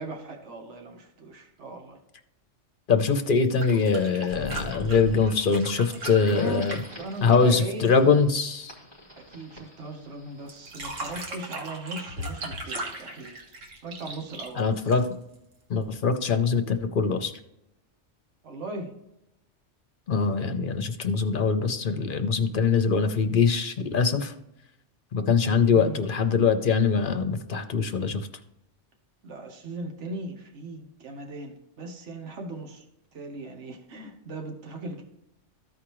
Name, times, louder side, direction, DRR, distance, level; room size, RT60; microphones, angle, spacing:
voice 1, 0.0-2.0 6.3-6.7 7.0-7.9 9.2-13.4 13.8-14.9 18.4-18.9 25.7-26.0 29.2-32.8 33.1-35.0, right 2 dB, 70° right, 3 dB, 1.4 m, -38 dB
voice 2, 2.9-6.8 7.2-8.7 14.6-15.1 15.7-17.3 20.1-24.3 25.1-28.3, left 5 dB, 50° left, 8 dB, 0.8 m, -23 dB
sound 1, 3.4-8.1 10.5-15.4 16.8-16.9, right 2 dB, 90° right, 1.7 m, -38 dB
sound 2, 3.6-11.1, equal, 20° right, 2.4 m, -44 dB
14.0 x 4.9 x 3.0 m, 0.85 s
omnidirectional pair, 1.3 m